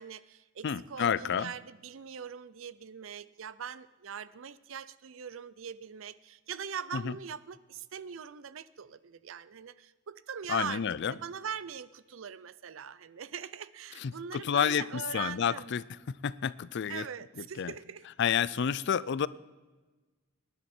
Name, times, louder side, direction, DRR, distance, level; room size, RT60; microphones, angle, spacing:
voice 1, 0.0-15.7 16.9-18.1 18.9-19.2, right 7 dB, 75° right, 17 dB, 0.5 m, -42 dB
voice 2, 0.6-1.5 6.9-7.1 10.5-11.1 14.0-15.8 16.2-17.1 17.4-17.7 18.2-19.3, left 7 dB, 60° left, 19 dB, 0.4 m, -30 dB
19.0 x 11.0 x 4.4 m, 1.2 s
head